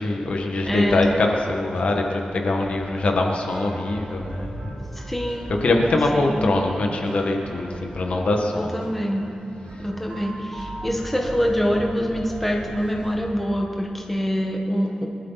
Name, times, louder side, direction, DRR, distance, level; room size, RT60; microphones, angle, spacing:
voice 1, 0.0-4.7 5.6-8.8, left 2 dB, 60° left, 2 dB, 1.6 m, -23 dB
sound 1, 0.5-13.1, right 1 dB, 80° right, 3.4 m, -39 dB
voice 2, 0.6-1.2 4.9-5.7 6.1-6.5 8.5-9.3 9.8-15.1, equal, 5° left, 0 dB, 1.4 m, -25 dB
24.0 x 12.5 x 4.2 m, 2.5 s
wide cardioid pair, 175°, 2 cm